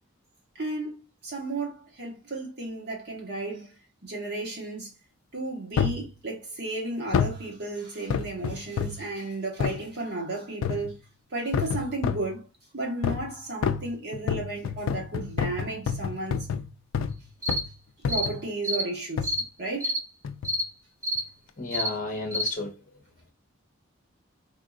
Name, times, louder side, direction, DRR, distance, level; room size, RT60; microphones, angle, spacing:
voice 1, 0.6-3.7 4.0-4.9 5.3-10.9 11.3-12.5 12.7-16.5 18.1-19.3 19.6-19.9, right 2 dB, 50° right, 1.2 m, -33 dB
sound 1, 5.8-6.1 7.1-7.4 8.1-9.1 9.6-9.8 10.6-11.0 11.5-12.3 13.0-13.3 13.6-17.2 17.5-17.7 18.0-18.4 19.2-19.4 20.2-20.6 21.1-21.2, left 6 dB, 75° left, 0.3 m, -29 dB
sound 2, 17.4-17.6 18.1-18.3 18.6-18.8 19.2-19.4 19.8-20.0 20.4-20.6 21.0-21.2 21.7-21.9 22.3-22.5, equal, 15° right, 0.7 m, -28 dB
voice 2, 21.6-22.7, left 3 dB, 40° left, 0.9 m, -32 dB
3.6 x 2.5 x 2.4 m
head